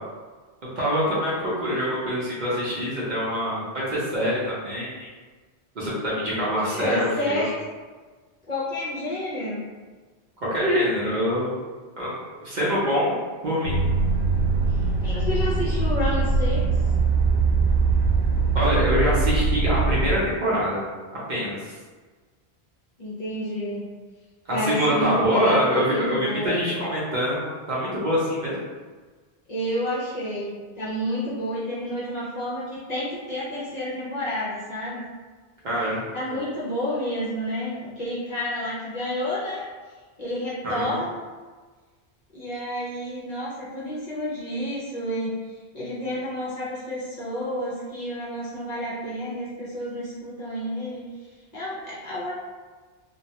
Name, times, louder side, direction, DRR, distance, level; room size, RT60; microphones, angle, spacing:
voice 1, 0.8-5.1 5.8-7.4 10.4-11.6 12.0-13.2 13.4-13.8 18.5-20.8 21.3-21.6 24.5-28.6 35.6-36.1 40.6-41.0, equal, 50° right, -7 dB, 0.7 m, -25 dB
voice 2, 6.6-7.5 8.5-9.7 15.0-16.6 23.0-23.9 24.5-26.6 29.5-35.0 36.1-39.6 40.2-41.2 42.3-45.4 45.7-51.0 51.5-52.3, equal, 50° left, -8 dB, 0.6 m, -30 dB
sound 1, 13.6-20.1, right 4 dB, 85° right, 0.8 m, -22 dB
2.2 x 2.1 x 2.7 m, 1.4 s
omnidirectional pair, 1.1 m